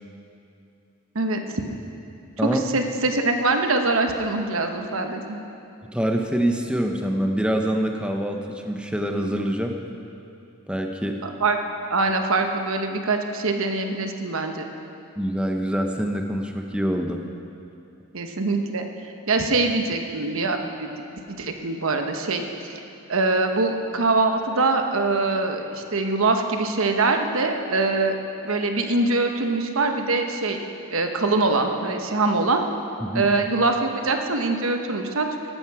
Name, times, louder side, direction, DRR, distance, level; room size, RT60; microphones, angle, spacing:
voice 1, 1.1-1.6 2.5-5.4 11.2-11.6 11.9-14.7 18.1-18.9 19.3-22.4 23.1-28.2 28.4-30.6 30.9-32.6 33.1-35.3, right 3 dB, 70° right, 5 dB, 1.1 m, -23 dB
voice 2, 5.9-9.7 10.7-11.2 15.2-17.2 33.0-33.3, equal, 5° right, 3 dB, 0.8 m, -25 dB
14.5 x 12.0 x 4.8 m, 2.7 s
head